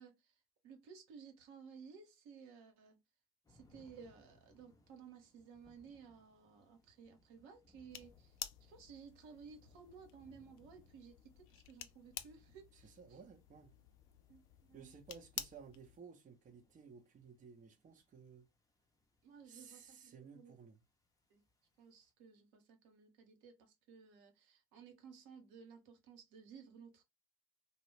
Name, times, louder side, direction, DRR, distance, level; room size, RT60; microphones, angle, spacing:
voice 1, 0.0-3.0 3.5-13.2 14.3-14.9 19.2-20.5 21.3-21.4 21.8-27.0, right 6 dB, 65° right, 0.9 m, -57 dB
sound 1, 3.4-22.1, left 2 dB, 10° left, 0.7 m, -71 dB
sound 2, 7.9-16.0, left 11 dB, 45° left, 0.4 m, -51 dB
voice 2, 12.8-13.7 14.7-18.5 19.4-20.8, right 6 dB, 25° right, 0.7 m, -56 dB
2.3 x 2.0 x 3.1 m
hypercardioid pair, 65°, 30 cm